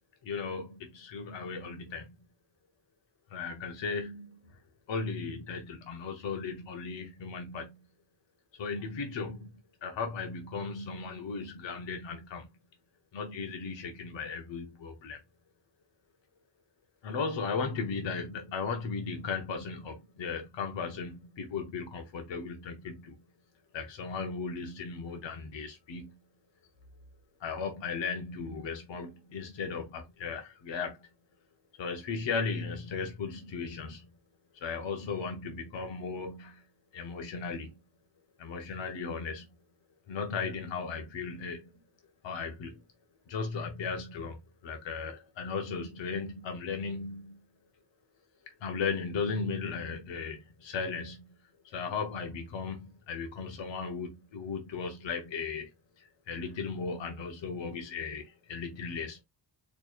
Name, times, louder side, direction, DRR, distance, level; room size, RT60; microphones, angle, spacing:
voice 1, 0.2-2.1 3.3-4.4 4.9-7.8 8.6-9.5 9.8-12.5 13.1-15.2 17.0-23.1 23.7-26.2 27.4-31.1 31.8-34.1 34.5-36.6 36.9-37.7 38.4-39.5 40.1-41.7 42.2-42.8 43.3-47.4 48.6-51.3 51.6-55.7 56.0-59.2, left 5 dB, 80° left, 1.0 m, -36 dB
4.6 x 3.1 x 2.5 m
wide cardioid pair, 180°, 44 cm